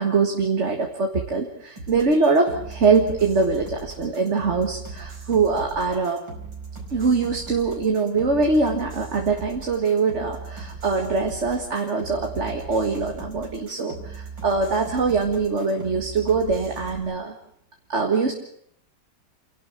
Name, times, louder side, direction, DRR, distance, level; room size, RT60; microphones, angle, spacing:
voice 1, 0.0-6.2 6.9-17.3 17.9-18.3, right 4 dB, 40° right, 2 dB, 2.0 m, -23 dB
sound 1, 1.8-17.0, right 4 dB, 80° right, 5.5 m, -38 dB
29.0 x 12.0 x 8.3 m, 0.67 s
omnidirectional pair, 2.0 m